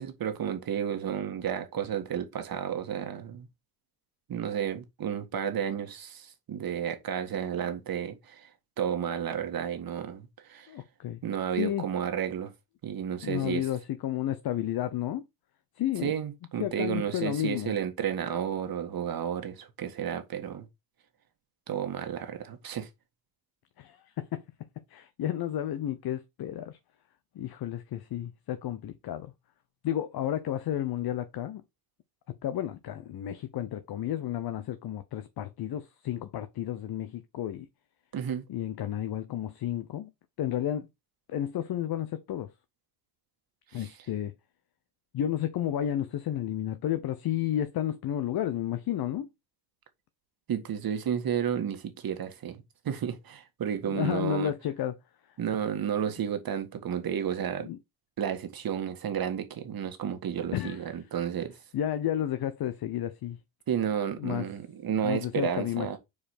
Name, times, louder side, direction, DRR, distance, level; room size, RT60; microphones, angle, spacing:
voice 1, 0.0-3.5 4.3-8.5 8.8-10.7 11.2-12.5 12.8-13.7 16.0-20.7 21.7-22.9 38.1-38.4 43.7-43.9 50.5-54.5 55.4-57.7 58.2-61.5 63.7-66.0, right 8 dB, 50° right, 1.6 m, -32 dB
voice 2, 10.7-11.2 11.5-11.8 13.2-15.3 15.8-16.1 16.6-17.7 23.8-24.4 24.9-26.8 27.3-29.3 29.8-31.6 32.4-37.7 38.5-40.1 40.4-40.9 41.3-42.5 43.7-44.3 45.1-49.3 53.9-55.0 57.6-57.8 60.5-60.8 61.7-63.4 64.2-64.5 65.0-66.0, left 11 dB, 50° left, 0.9 m, -32 dB
4.9 x 4.7 x 4.2 m
supercardioid pair, 65°, 46 cm